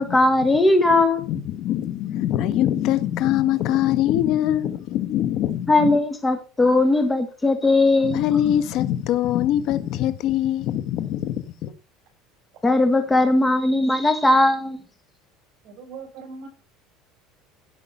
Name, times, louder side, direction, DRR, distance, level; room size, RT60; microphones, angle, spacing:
voice 1, 0.0-1.2 5.7-8.2 12.6-14.8, left 2 dB, 10° left, 1.6 m, -19 dB
voice 2, 1.3-6.0 8.0-11.7, left 11 dB, 55° left, 1.5 m, -23 dB
voice 3, 15.6-16.5, right 5 dB, 50° right, 7.6 m, -39 dB
17.0 x 6.0 x 5.6 m
supercardioid pair, 130°, 0 cm